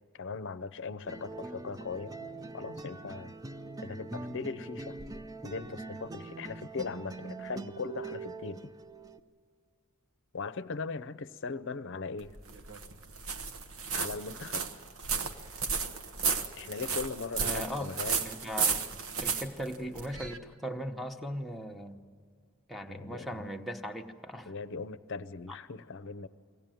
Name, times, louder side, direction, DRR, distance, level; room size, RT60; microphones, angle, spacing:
voice 1, 0.1-2.2 2.5-3.3 3.8-5.0 5.4-8.6 10.3-12.4 13.9-14.7 16.6-18.2 22.9-23.4 24.5-26.3, left 4 dB, 60° left, 16 dB, 0.7 m, -39 dB
sound 1, 1.0-9.2, right 3 dB, 15° right, 0.5 m, -43 dB
sound 2, 12.2-20.4, right 6 dB, 80° right, 1.1 m, -33 dB
voice 2, 17.4-17.9 18.2-18.8 19.2-22.0 22.7-24.5 25.5-25.6, equal, ahead, 2 dB, 0.9 m, -38 dB
23.5 x 17.0 x 9.2 m, 2.1 s
head